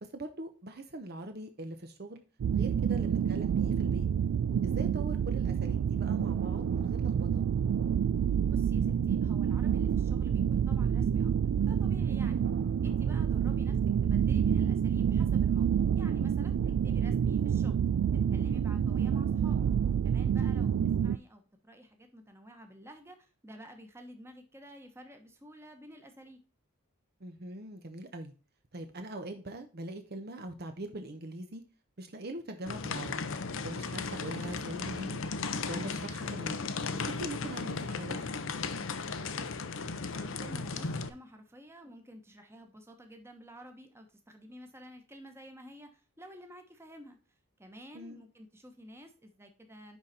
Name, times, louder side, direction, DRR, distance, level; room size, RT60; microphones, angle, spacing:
voice 1, 0.0-2.2 2.5-4.1 4.6-7.4 16.5-16.8 20.6-20.8 27.2-28.3 28.7-31.6 32.0-33.1 33.6-35.2 35.7-36.6 37.1-38.3 47.9-48.2, right 1 dB, 45° right, 7 dB, 0.8 m, -42 dB
sound 1, 2.4-21.2, right 8 dB, 75° right, 0.3 m, -28 dB
voice 2, 8.5-11.3 11.6-12.4 12.8-15.7 15.9-16.5 16.8-17.8 18.3-19.6 20.0-23.2 23.4-26.4 39.2-39.5 40.1-47.2 47.6-50.0, equal, 10° right, 5 dB, 1.1 m, -51 dB
sound 2, 32.7-41.1, left 4 dB, 60° left, 0.7 m, -36 dB
10.5 x 4.1 x 4.2 m, 0.35 s
head